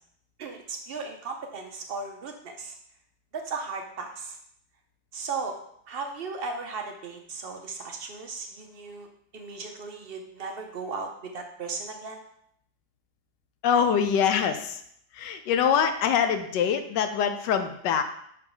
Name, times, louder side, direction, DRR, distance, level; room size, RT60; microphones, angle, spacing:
voice 1, 0.4-2.8 3.3-4.4 5.1-5.6 5.9-9.1 9.3-12.2, right 4 dB, 75° right, 3 dB, 0.5 m, -36 dB
voice 2, 13.6-14.8 15.1-18.0, left 7 dB, 80° left, 8 dB, 1.2 m, -24 dB
5.8 x 5.0 x 3.8 m, 0.70 s
omnidirectional pair, 1.9 m